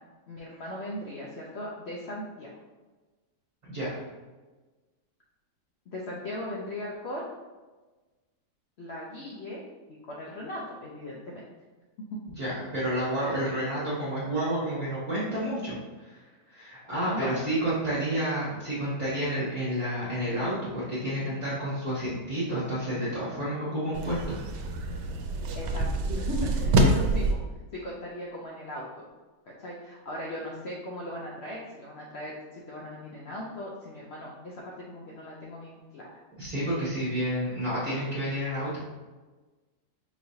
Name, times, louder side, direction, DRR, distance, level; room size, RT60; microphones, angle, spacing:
voice 1, 0.3-2.5 5.9-7.2 8.8-9.6 9.9-11.4 13.2-13.3 17.0-17.4 25.5-25.9 26.1-27.4 27.7-28.9 29.4-36.2, left 1 dB, 80° left, -4 dB, 0.6 m, -38 dB
voice 2, 3.7-4.0 12.4-16.2 16.5-24.4 36.4-38.8, right 1 dB, 20° right, -10 dB, 0.9 m, -30 dB
sound 1, 23.9-27.3, right 1 dB, 85° right, 1.2 m, -26 dB
4.8 x 3.1 x 2.7 m, 1.3 s
omnidirectional pair, 1.8 m